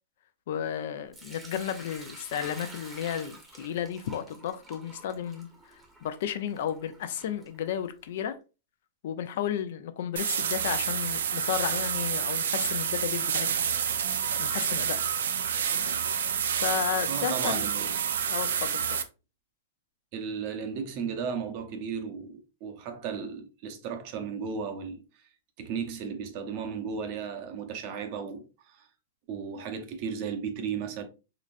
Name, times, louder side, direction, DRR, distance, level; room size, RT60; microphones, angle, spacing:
voice 1, 0.5-8.4 9.0-13.5 14.4-15.1 16.6-17.7 18.3-18.8, left 9 dB, 60° left, 0.5 m, -33 dB
Sink (filling or washing) / Liquid, 1.1-8.1, right 2 dB, 10° right, 0.8 m, -49 dB
sound 1, 10.2-19.0, right 8 dB, 90° right, 0.4 m, -29 dB
voice 2, 17.1-18.1 20.1-25.0 25.6-28.9 29.3-31.0, right 6 dB, 40° right, 0.7 m, -35 dB
3.8 x 3.2 x 2.5 m
supercardioid pair, 155°, 0 cm